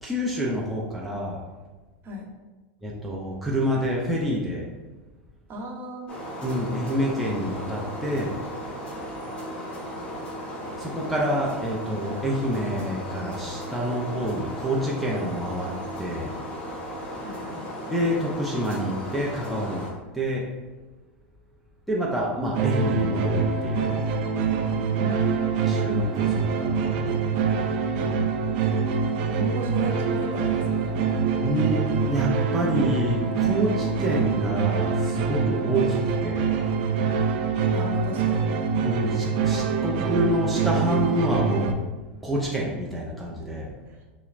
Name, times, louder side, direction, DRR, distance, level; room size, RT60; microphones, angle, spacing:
voice 1, 0.0-1.4 2.8-4.7 6.4-8.4 10.8-16.3 17.9-19.9 20.1-20.5 21.9-23.9 25.7-27.2 31.4-36.6 38.8-41.8 42.2-43.7, equal, ahead, -5 dB, 0.6 m, -27 dB
voice 2, 5.5-6.1 17.2-17.6 25.0-25.6 29.3-31.0 37.7-38.5 43.9-44.0, right 2 dB, 35° right, -1 dB, 0.8 m, -34 dB
sound 1, 6.1-19.9, equal, 15° left, 1.1 m, -36 dB
sound 2, 22.5-41.7, right 5 dB, 60° right, 0.4 m, -25 dB
5.5 x 2.1 x 2.5 m, 1.2 s
hypercardioid pair, 105°, 6 cm